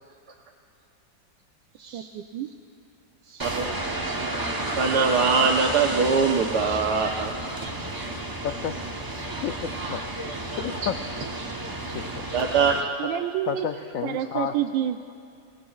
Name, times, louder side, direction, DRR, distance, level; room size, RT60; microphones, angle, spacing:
voice 1, 1.9-2.5 13.0-13.7 14.0-15.1, right 11 dB, 90° right, 8 dB, 1.4 m, -28 dB
voice 2, 3.3-3.7 4.3-4.5 4.8-7.3 7.7-7.8 12.3-12.8, right 5 dB, 65° right, 0 dB, 1.4 m, -23 dB
sound 1, 3.4-12.8, right 2 dB, 25° right, 0.5 m, -31 dB
voice 3, 8.4-8.9 9.4-10.0 10.6-11.0 11.9-12.2 13.5-14.5, left 9 dB, 80° left, 5 dB, 0.7 m, -31 dB
30.0 x 18.5 x 2.4 m, 2.4 s
omnidirectional pair, 2.0 m